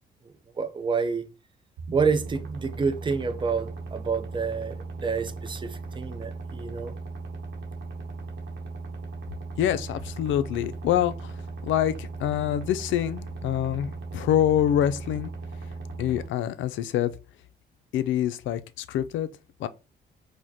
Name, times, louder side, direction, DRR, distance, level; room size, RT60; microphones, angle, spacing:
voice 1, 0.5-1.2 1.9-6.9, right 5 dB, 25° right, 0.6 m, -28 dB
sound 1, 1.8-16.3, right 3 dB, 70° right, 1.0 m, -38 dB
voice 2, 9.6-11.3 11.6-15.3 16.0-17.1 17.9-19.3 19.6-19.7, left 11 dB, 75° left, 0.4 m, -26 dB
4.8 x 2.2 x 2.7 m
cardioid pair, 90°, 20 cm